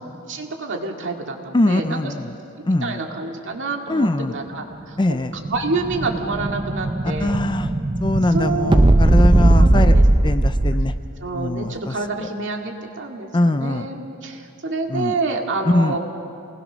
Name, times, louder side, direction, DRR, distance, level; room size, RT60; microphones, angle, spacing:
voice 1, 0.2-2.1 2.8-5.2 5.5-7.4 8.3-8.8 9.6-10.3 11.2-16.0, right 3 dB, 55° right, 2 dB, 2.2 m, -28 dB
voice 2, 1.5-2.3 2.6-3.0 3.9-4.4 5.0-5.3 7.2-7.7 8.0-10.0 10.2-10.9 11.3-12.3 13.3-13.9 14.9-15.1 15.7-16.0, left 1 dB, 20° left, 10 dB, 0.5 m, -22 dB
Explosion, 5.0-11.1, right 1 dB, 20° right, 0.6 m, -18 dB
28.0 x 20.0 x 6.2 m, 2.7 s
head